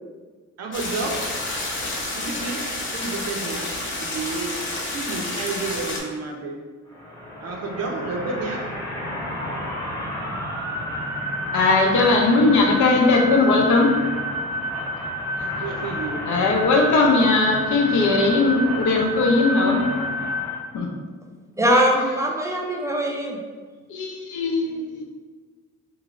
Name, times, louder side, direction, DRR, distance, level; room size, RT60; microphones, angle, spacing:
voice 1, 0.6-1.2 2.1-2.6 2.9-3.7 4.0-4.5 4.9-6.6 7.4-8.7 15.6-16.3 16.6-16.9, right 3 dB, 55° right, 2 dB, 0.6 m, -30 dB
sound 1, 0.7-6.0, left 2 dB, 40° left, 0.8 m, -29 dB
sound 2, 6.9-20.6, equal, 10° left, 0.9 m, -29 dB
voice 2, 11.5-13.9 15.4-15.5 16.3-19.9 20.7-20.9 23.9-25.0, left 3 dB, 75° left, 1 dB, 0.6 m, -19 dB
voice 3, 21.6-23.4, equal, 10° right, 0 dB, 0.4 m, -21 dB
2.7 x 2.5 x 3.0 m, 1.5 s
cardioid pair, 90°, 30 cm